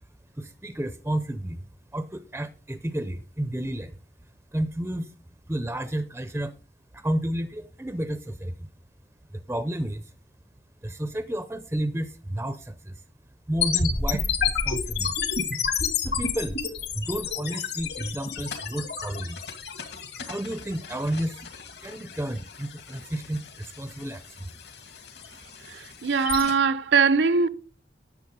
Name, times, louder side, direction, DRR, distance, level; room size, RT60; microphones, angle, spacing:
voice 1, 0.4-1.7 1.9-4.0 4.5-5.1 5.5-6.6 6.9-8.7 9.3-10.1 10.8-13.0 13.5-15.2 16.0-16.6 16.9-19.4 20.3-21.4 21.8-24.5, right 1 dB, 10° right, 0.5 m, -31 dB
sound 1, 13.6-26.5, left 6 dB, 65° left, 2.3 m, -31 dB
voice 2, 25.7-27.5, right 5 dB, 75° right, 0.7 m, -21 dB
11.0 x 7.1 x 5.3 m
head